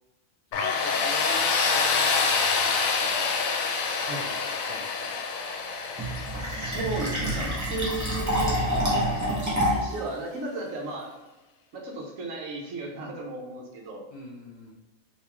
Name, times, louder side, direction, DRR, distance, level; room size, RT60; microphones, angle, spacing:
Tools, 0.5-9.3, left 5 dB, 80° left, 1.0 m, -27 dB
voice 1, 0.5-3.8 4.1-5.2 14.1-14.7, left 2 dB, 50° left, -5 dB, 1.1 m, -44 dB
Fill (with liquid), 6.0-10.0, equal, 15° right, 0.7 m, -27 dB
voice 2, 6.3-8.6 9.7-11.2 11.7-14.0, right 2 dB, 80° right, 0 dB, 1.2 m, -34 dB
3.4 x 2.9 x 2.9 m, 1.1 s
omnidirectional pair, 1.4 m